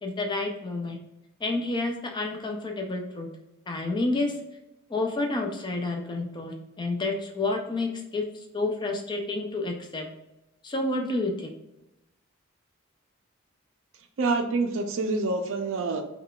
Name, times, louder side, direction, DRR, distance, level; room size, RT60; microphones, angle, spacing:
voice 1, 0.0-1.0 1.4-3.3 3.7-4.4 4.9-10.1 10.6-11.5, left 2 dB, 20° left, 3 dB, 0.4 m, -29 dB
voice 2, 14.2-16.0, right 3 dB, 65° right, 6 dB, 0.4 m, -26 dB
3.5 x 2.3 x 2.3 m, 0.91 s
head